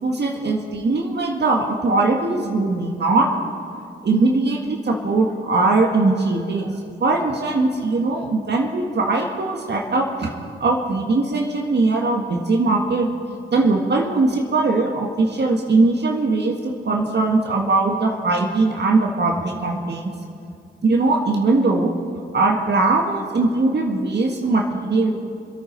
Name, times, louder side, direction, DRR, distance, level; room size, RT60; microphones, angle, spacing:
voice 1, 0.0-3.3 3.7-6.7 7.0-13.1 13.5-20.1 20.8-21.9 22.3-25.1, right 3 dB, 55° right, 1 dB, 1.7 m, -20 dB
25.0 x 9.2 x 5.4 m, 2.5 s
supercardioid pair, 40°, 21 cm